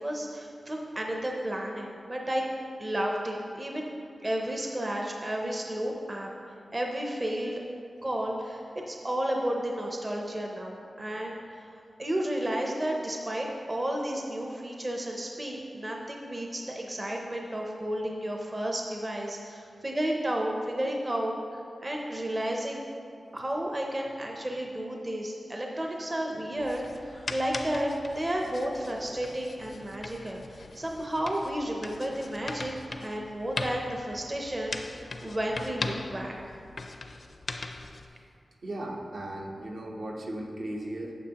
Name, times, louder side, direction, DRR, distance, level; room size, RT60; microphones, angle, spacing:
voice 1, 0.0-2.5 2.8-3.9 4.2-6.3 6.7-7.6 8.0-11.7 12.0-22.8 23.3-32.7 33.0-36.3, right 1 dB, 25° right, 0 dB, 0.6 m, -32 dB
sound 1, 26.6-38.1, left 3 dB, 50° left, 0.4 m, -40 dB
voice 2, 38.6-41.2, right 1 dB, 70° right, -1 dB, 0.9 m, -36 dB
8.9 x 6.9 x 2.9 m, 2.4 s
wide cardioid pair, 130°, 0 cm